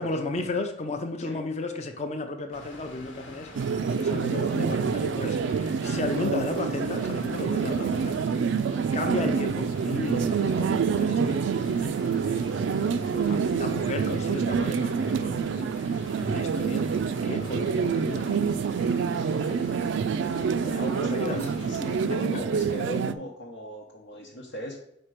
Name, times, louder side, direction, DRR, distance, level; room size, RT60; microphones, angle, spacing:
voice 1, 0.0-8.6 8.9-12.9 13.6-15.7 16.2-16.9 17.2-18.5 20.9-21.5 22.1-22.6, left 2 dB, 35° left, 5 dB, 0.5 m, -34 dB
Water, 2.5-22.1, left 2 dB, 70° left, 1.1 m, -46 dB
sound 1, 3.5-23.1, right 6 dB, 65° right, 0.3 m, -27 dB
voice 2, 12.6-13.6 19.3-24.8, equal, 90° left, -3 dB, 1.0 m, -39 dB
5.2 x 4.4 x 5.0 m, 0.79 s
head